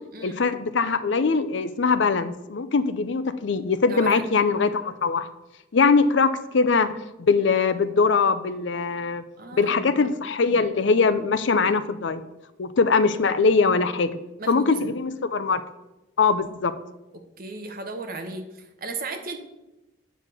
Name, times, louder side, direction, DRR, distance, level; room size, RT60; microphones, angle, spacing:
voice 1, 0.2-5.3 5.7-6.9 7.2-9.2 9.6-12.2 12.6-14.2 14.5-15.6 16.2-16.7, left 4 dB, 70° left, 12 dB, 0.6 m, -22 dB
voice 2, 3.9-4.4 9.4-9.9 14.4-14.9 17.1-19.4, right 3 dB, 50° right, 5 dB, 1.1 m, -35 dB
8.9 x 4.2 x 6.6 m, 0.98 s
head